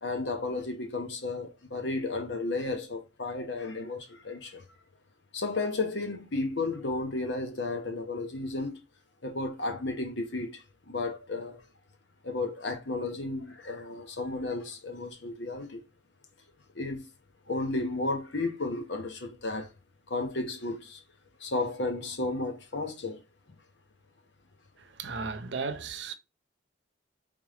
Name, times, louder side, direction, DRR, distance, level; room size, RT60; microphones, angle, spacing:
voice 1, 0.0-4.6 5.3-8.8 9.2-11.6 12.2-15.8 16.7-17.1 17.5-19.7 20.1-21.0 21.4-23.2, left 2 dB, 75° left, 1.0 m, -33 dB
voice 2, 24.8-26.1, right 4 dB, 75° right, 0.7 m, -35 dB
3.6 x 3.4 x 3.6 m
head